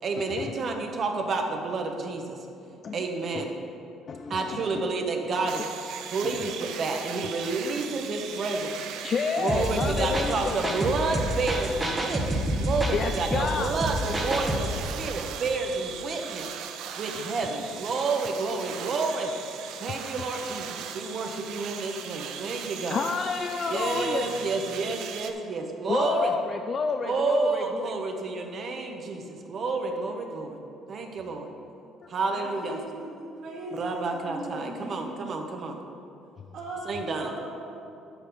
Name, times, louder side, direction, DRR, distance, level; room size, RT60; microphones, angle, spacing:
voice 1, 0.0-2.4 2.9-3.5 4.3-5.6 6.1-8.8 9.4-16.6 17.0-19.3 19.8-23.0 23.7-26.3 27.0-30.6 30.9-31.5 32.1-32.8 33.7-35.8 36.8-37.3, right 3 dB, 35° right, 3 dB, 0.9 m, -30 dB
voice 2, 4.0-4.7 6.3-6.5 9.0-10.8 12.9-13.7 22.9-24.5 25.9-28.0, left 5 dB, 35° left, 6 dB, 0.3 m, -30 dB
sound 1, 5.5-25.3, right 8 dB, 75° right, 0.6 m, -39 dB
sound 2, 9.5-14.8, equal, 10° right, 1.0 m, -29 dB
voice 3, 32.3-35.3 36.5-37.8, right 1 dB, 60° right, -8 dB, 2.3 m, -39 dB
11.0 x 8.0 x 4.0 m, 2.6 s
cardioid pair, 160°, 0 cm